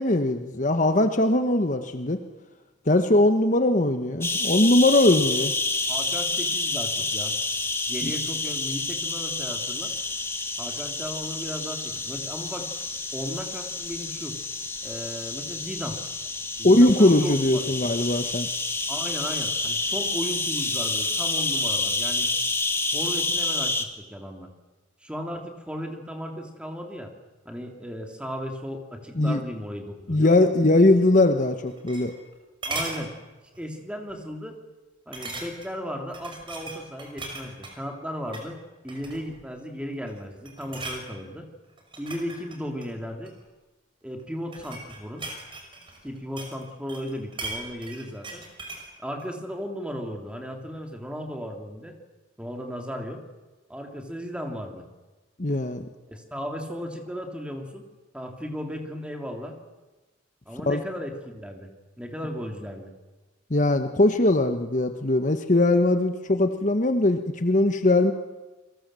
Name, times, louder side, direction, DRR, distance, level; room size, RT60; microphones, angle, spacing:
voice 1, 0.0-2.2 2.9-5.5 8.0-8.1 16.6-18.5 29.2-29.4 30.1-32.1 55.4-55.9 60.7-60.8 63.5-68.1, left 2 dB, 40° left, 7 dB, 1.2 m, -20 dB
sound 1, 4.2-23.8, left 3 dB, 15° left, 1.8 m, -29 dB
voice 2, 5.9-7.3 7.9-9.9 10.6-12.7 13.1-14.4 14.8-16.0 16.6-17.8 18.9-22.3 22.9-24.5 25.0-27.1 27.4-30.3 32.7-33.1 33.6-34.6 35.1-38.6 38.8-41.5 42.0-43.3 44.0-45.3 46.0-48.4 49.0-52.0 52.4-53.2 53.7-54.9 56.1-57.8 58.1-59.6 60.5-61.7 62.0-62.9, equal, 5° right, 3 dB, 3.0 m, -35 dB
sound 2, 31.5-32.3 32.6-33.0 33.5-33.8 34.1-34.2 35.1-35.8 36.1-37.8 38.2-38.5 38.9-39.4 39.9-40.2 40.4-41.0 41.8-43.4 44.2-46.6 46.9-48.9 49.2-49.3, right 2 dB, 25° right, 5.7 m, -37 dB
28.5 x 23.0 x 7.7 m, 1.2 s
head